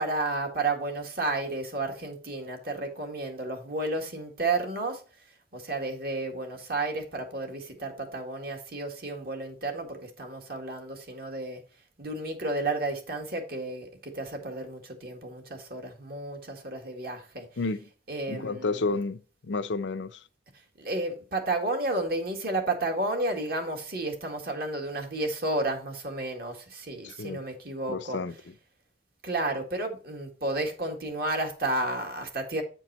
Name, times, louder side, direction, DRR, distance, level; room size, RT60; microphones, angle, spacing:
voice 1, 0.0-5.0 5.5-11.6 12.0-17.5 18.1-19.0 20.8-28.2 29.2-32.6, right 2 dB, 55° right, 1.9 m, -32 dB
voice 2, 18.3-20.2 27.0-27.4 27.9-28.3, left 3 dB, 75° left, 0.6 m, -31 dB
9.1 x 4.5 x 4.2 m
head